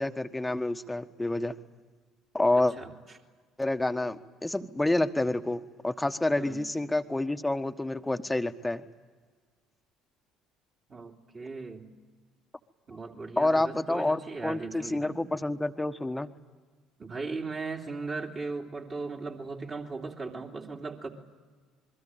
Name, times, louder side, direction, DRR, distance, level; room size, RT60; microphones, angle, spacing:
voice 1, 0.0-1.5 2.3-2.7 3.6-8.8 13.4-16.3, left 2 dB, 10° left, 9 dB, 1.3 m, -28 dB
voice 2, 2.5-2.9 6.4-6.7 10.9-11.9 12.9-15.2 17.0-21.1, right 3 dB, 35° right, 0 dB, 3.1 m, -38 dB
26.5 x 22.5 x 9.0 m, 1.4 s
figure-of-eight pair, 55°, 0 cm